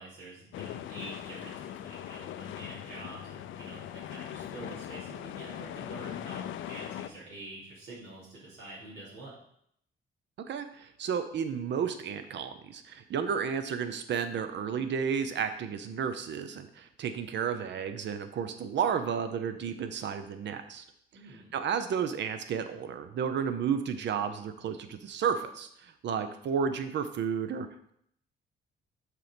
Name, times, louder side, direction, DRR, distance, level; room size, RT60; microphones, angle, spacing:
voice 1, 0.0-9.4 21.1-21.5, right 2 dB, 85° right, -7 dB, 3.0 m, -47 dB
sound 1, 0.5-7.1, left 11 dB, 75° left, 0.5 m, -40 dB
voice 2, 10.5-20.8 21.5-27.9, right 7 dB, 65° right, 9 dB, 0.8 m, -32 dB
6.7 x 4.6 x 5.2 m, 0.70 s
cardioid pair, 90°, 20 cm